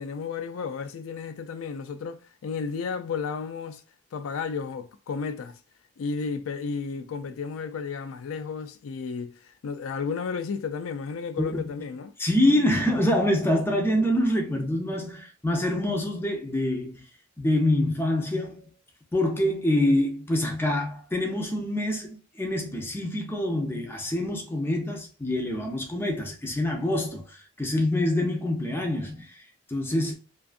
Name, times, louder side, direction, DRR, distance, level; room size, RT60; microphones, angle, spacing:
voice 1, 0.0-3.8 4.1-5.6 6.0-12.1, left 5 dB, 90° left, 0.4 m, -33 dB
voice 2, 12.2-17.0 17.4-18.6 19.1-30.1, left 1 dB, 10° left, 0.5 m, -26 dB
2.5 x 2.3 x 2.4 m
head